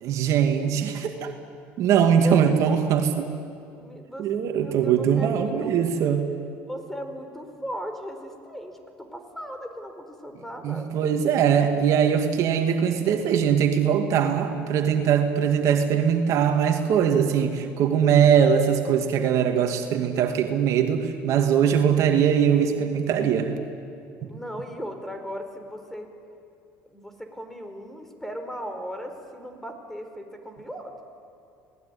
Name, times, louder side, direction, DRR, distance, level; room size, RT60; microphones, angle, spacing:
voice 1, 0.0-1.3 1.8-3.3 4.2-6.3 10.6-23.6, right 8 dB, 60° right, 5 dB, 2.3 m, -21 dB
voice 2, 2.1-3.0 3.7-4.3 4.5-5.7 6.6-10.9 24.2-26.1 26.9-31.0, equal, 5° left, 6 dB, 4.7 m, -37 dB
27.0 x 19.0 x 9.9 m, 2.6 s
supercardioid pair, 80°, 6 cm